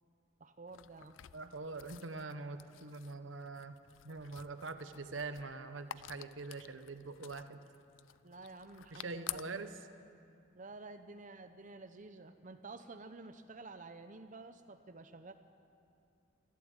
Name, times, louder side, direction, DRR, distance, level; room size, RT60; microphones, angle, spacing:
voice 1, 0.4-1.1 8.2-9.6 10.5-15.3, right 3 dB, 40° right, 8 dB, 0.8 m, -51 dB
sound 1, 0.7-9.8, left 12 dB, 90° left, 0.5 m, -51 dB
voice 2, 1.3-3.8 4.0-7.6 8.9-9.7, right 3 dB, 85° right, 9 dB, 1.1 m, -44 dB
26.5 x 11.5 x 8.9 m, 2.6 s
head